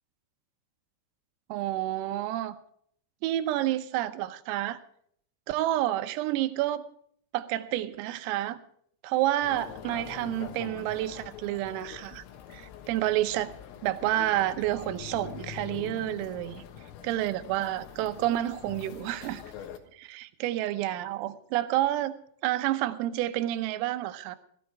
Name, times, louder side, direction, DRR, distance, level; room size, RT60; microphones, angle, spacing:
voice 1, 1.5-2.6 3.2-4.8 5.5-6.8 7.3-8.6 9.0-12.2 12.5-13.5 13.8-16.6 17.0-19.4 19.9-22.1 22.4-24.4, right 14 dB, 85° right, 11 dB, 3.6 m, -29 dB
sound 1, 9.4-19.8, left 9 dB, 80° left, 4.0 m, -44 dB
16.5 x 14.0 x 4.7 m, 0.64 s
omnidirectional pair, 5.9 m